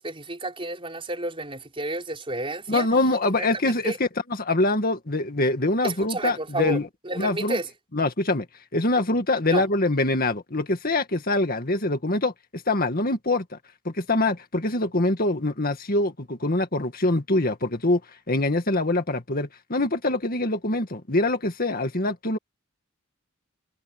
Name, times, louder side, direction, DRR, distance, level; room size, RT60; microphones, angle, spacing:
voice 1, 0.0-2.9 3.4-4.0 5.8-6.8 7.0-7.7 9.5-9.7, right 2 dB, 25° right, 5.0 m, -31 dB
voice 2, 2.7-4.1 4.4-6.9 7.2-7.6 7.9-8.5 8.7-12.3 12.7-13.4 13.9-18.0 18.3-22.4, left 2 dB, 45° left, 2.1 m, -24 dB
head